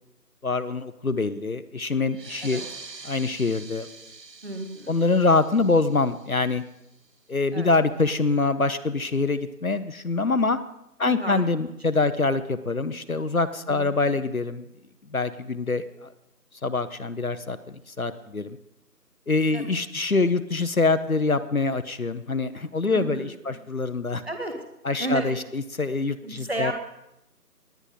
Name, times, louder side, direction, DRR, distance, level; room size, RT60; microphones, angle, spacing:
voice 1, 0.4-2.6 3.0-3.9 4.9-6.6 7.3-10.6 11.0-14.7 15.1-16.1 16.6-18.6 19.3-24.2 24.8-26.7, left 3 dB, 60° left, 13 dB, 0.7 m, -25 dB
sound 1, 2.1-7.2, right 4 dB, 85° right, 1.3 m, -45 dB
voice 2, 4.4-5.0 7.5-7.7 11.0-11.4 13.7-14.2 19.5-19.7 22.9-23.3 24.2-24.6 25.0-25.3 26.2-26.7, right 2 dB, 40° right, 4 dB, 1.8 m, -32 dB
18.5 x 10.5 x 3.8 m, 0.83 s
figure-of-eight pair, 175°, 49 cm